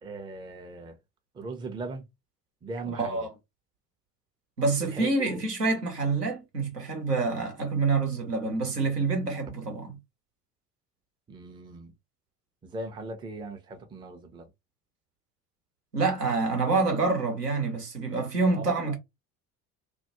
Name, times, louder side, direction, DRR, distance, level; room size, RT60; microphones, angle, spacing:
voice 1, 0.0-1.0 1.3-2.0 2.6-3.3 4.9-5.4 11.3-11.9 12.6-14.5 18.5-18.9, right 3 dB, 10° right, 0.4 m, -39 dB
voice 2, 2.9-3.3 4.6-10.0 15.9-19.0, right 3 dB, 85° right, 0.8 m, -27 dB
2.2 x 2.0 x 2.8 m
figure-of-eight pair, 65°, 46 cm